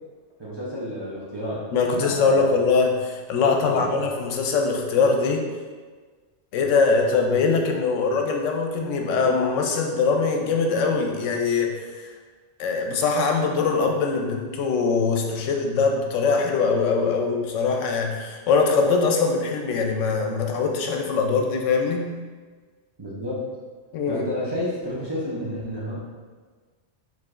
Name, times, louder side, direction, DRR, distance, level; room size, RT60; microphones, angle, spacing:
voice 1, 0.4-2.5 3.7-3.9 23.0-23.5 24.1-26.0, left 1 dB, 30° right, -8 dB, 0.5 m, -31 dB
voice 2, 1.7-5.4 6.5-12.1 12.6-22.1 23.9-24.3, left 4 dB, 85° left, 2 dB, 0.9 m, -22 dB
4.7 x 3.0 x 2.4 m, 1.4 s
omnidirectional pair, 1.2 m